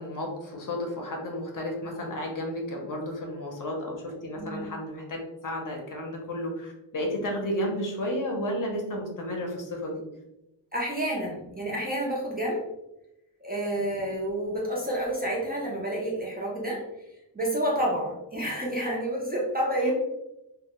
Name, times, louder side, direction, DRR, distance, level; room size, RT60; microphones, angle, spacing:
voice 1, 0.0-5.2 5.4-10.0 19.8-19.9, left 1 dB, 45° left, 0 dB, 0.6 m, -32 dB
voice 2, 4.4-4.7 10.7-12.7 13.4-16.8 17.3-19.9, right 1 dB, 20° right, -4 dB, 0.4 m, -29 dB
2.1 x 2.1 x 2.9 m, 0.90 s
wide cardioid pair, 125°, 45 cm